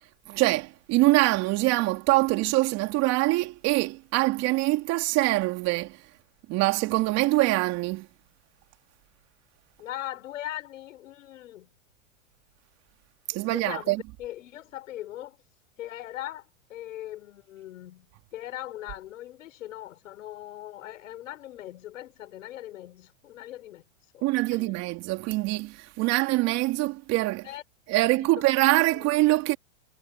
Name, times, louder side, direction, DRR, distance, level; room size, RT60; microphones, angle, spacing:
voice 1, 0.3-6.0 6.5-8.1 13.3-14.0 24.2-27.5 27.9-29.6, right 20 dB, 40° right, 3.2 m, -24 dB
voice 2, 9.8-11.7 13.4-15.4 15.8-18.1 18.3-23.8 24.5-24.7 27.4-27.6 28.2-28.4, left 14 dB, 75° left, 7.4 m, -40 dB
hypercardioid pair, 135°, 40 cm